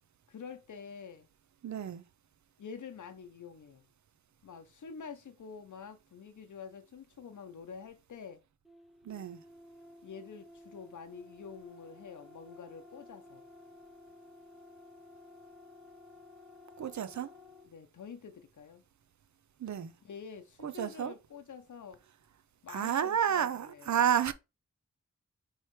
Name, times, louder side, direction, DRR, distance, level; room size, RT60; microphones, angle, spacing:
voice 1, 0.3-1.3 2.6-3.9 4.4-8.4 10.0-13.4 17.6-18.8 20.0-22.0 22.6-24.0, left 6 dB, 85° left, 0.8 m, -47 dB
voice 2, 1.6-2.0 9.0-9.4 16.8-17.3 19.6-19.9 20.6-21.1 22.7-24.3, right 9 dB, 75° right, 0.5 m, -31 dB
sound 1, 8.6-17.7, left 1 dB, ahead, 0.7 m, -54 dB
4.5 x 3.2 x 3.1 m
wide cardioid pair, 95°, 29 cm